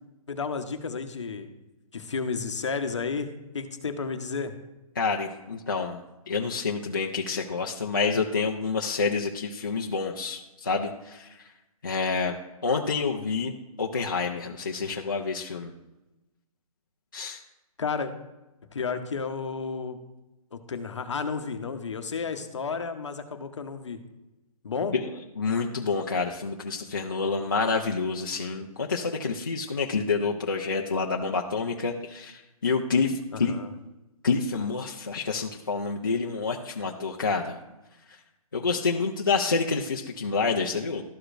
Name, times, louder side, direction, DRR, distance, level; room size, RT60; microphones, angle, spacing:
voice 1, 0.3-1.5 1.9-4.5 17.8-18.1 18.7-20.0 20.5-24.0 24.6-24.9 33.3-33.7, left 5 dB, 50° left, 7 dB, 0.8 m, -32 dB
voice 2, 5.0-6.0 6.3-11.3 11.8-12.4 12.6-15.7 17.1-17.4 24.9-25.1 25.4-33.6 34.2-37.6 38.5-41.0, left 4 dB, 35° left, 0 dB, 0.4 m, -28 dB
13.0 x 4.8 x 2.5 m, 1.0 s
hypercardioid pair, 180°, 19 cm